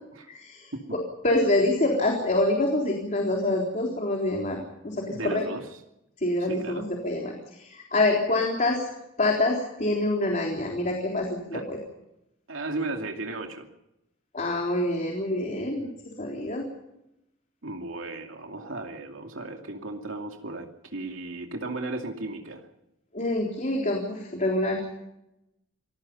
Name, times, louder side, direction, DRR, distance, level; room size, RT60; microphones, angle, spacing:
voice 1, 0.3-1.0 1.2-5.5 6.2-8.8 9.2-11.8 14.3-15.9 16.2-16.7 23.1-25.0, left 2 dB, 40° left, 1 dB, 3.8 m, -26 dB
voice 2, 5.0-5.6 6.5-6.8 11.5-11.6 12.5-13.7 17.6-22.6, right 2 dB, 85° right, 3 dB, 2.6 m, -35 dB
27.0 x 19.5 x 5.5 m, 0.86 s
head